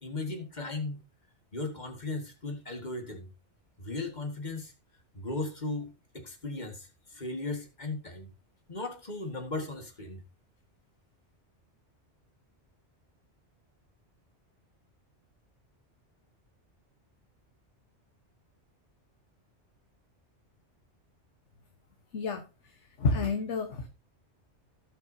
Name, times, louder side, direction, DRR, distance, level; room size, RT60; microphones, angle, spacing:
voice 1, 0.0-1.0 1.5-3.3 3.8-4.7 5.1-8.3 8.7-10.2, left 2 dB, 40° left, 2.0 m, -37 dB
voice 2, 23.0-23.9, left 3 dB, 85° left, 1.5 m, -29 dB
18.0 x 6.0 x 2.7 m
omnidirectional pair, 1.2 m